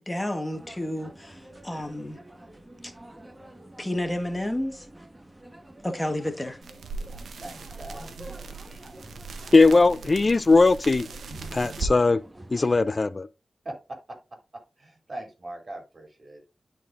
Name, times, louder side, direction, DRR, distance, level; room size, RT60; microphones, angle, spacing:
voice 1, 0.1-2.2 2.8-2.9 3.8-4.9 5.8-6.6, left 1 dB, 20° left, 1.4 m, -31 dB
sound 1, 0.5-12.8, right 1 dB, 20° right, 1.3 m, -48 dB
sound 2, 6.6-12.0, right 3 dB, 90° right, 0.8 m, -38 dB
voice 2, 7.4-8.0 12.6-12.7 13.6-14.2 14.8-16.5, right 1 dB, 50° right, 3.0 m, -40 dB
voice 3, 9.5-11.1 11.5-12.2 12.5-13.3, left 3 dB, 45° left, 0.3 m, -19 dB
12.5 x 4.2 x 2.6 m
cardioid pair, 45°, 0 cm